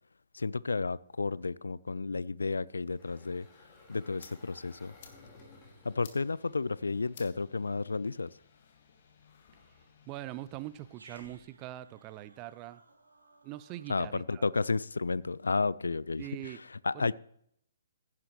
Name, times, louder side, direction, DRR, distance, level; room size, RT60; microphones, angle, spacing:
voice 1, 0.3-3.5 3.9-4.9 5.8-8.3 13.9-16.2 16.8-17.1, left 4 dB, 70° left, 0.3 m, -32 dB
Engine, 2.7-7.9, left 2 dB, 25° left, 4.3 m, -58 dB
sound 1, 3.5-11.0, left 6 dB, 45° left, 1.8 m, -59 dB
voice 2, 10.1-12.8 13.4-14.5 16.2-16.6 16.9-17.1, right 15 dB, 25° right, 0.4 m, -42 dB
Growling, 10.9-15.5, right 2 dB, 70° right, 2.8 m, -60 dB
15.5 x 11.0 x 3.1 m
figure-of-eight pair, 130°, 0 cm